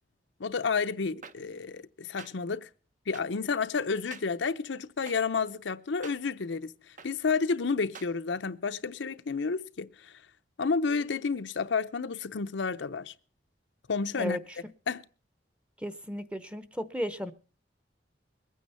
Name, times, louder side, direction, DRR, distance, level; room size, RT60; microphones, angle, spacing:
voice 1, 0.4-2.7 3.1-6.7 7.0-10.1 10.6-13.1 13.9-14.4 14.9-15.0, left 5 dB, 85° left, 0.7 m, -30 dB
sound 1, 1.2-1.3 2.2-2.3 3.1-3.2 4.1-4.2 5.1-5.2 6.0-6.2 7.0-7.1 7.9-8.1, right 5 dB, 45° right, 0.9 m, -45 dB
voice 2, 15.8-17.3, equal, 5° right, 0.8 m, -34 dB
21.5 x 9.3 x 5.5 m
head